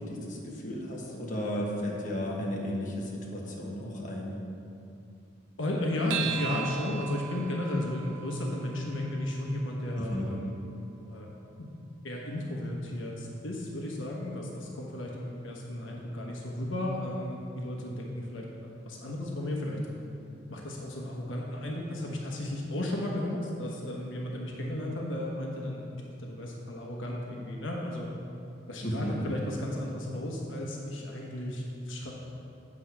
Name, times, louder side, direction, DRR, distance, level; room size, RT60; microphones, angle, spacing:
voice 1, 0.0-4.4 10.0-10.3 28.8-29.2, equal, 45° left, -3 dB, 1.3 m, -34 dB
voice 2, 5.6-10.6 11.1-11.3 11.6-11.7 12.0-19.9 20.5-28.1 28.7-32.1, left 1 dB, 85° left, -1 dB, 1.1 m, -34 dB
sound 1, 6.1-10.9, right 9 dB, 85° right, 0.7 m, -39 dB
8.5 x 4.9 x 5.9 m, 2.6 s
head